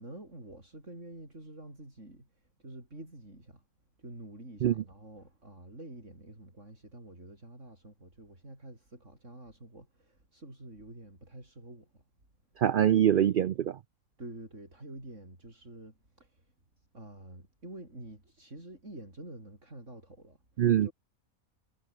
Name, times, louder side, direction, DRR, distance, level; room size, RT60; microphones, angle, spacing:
voice 1, 0.0-2.3 2.6-3.6 4.0-12.0 14.2-16.5 16.9-20.4 20.8-20.9, right 1 dB, 55° right, 8.0 m, -48 dB
voice 2, 12.6-13.8 20.6-20.9, right 10 dB, 90° right, 0.4 m, -24 dB
omnidirectional pair, 1.5 m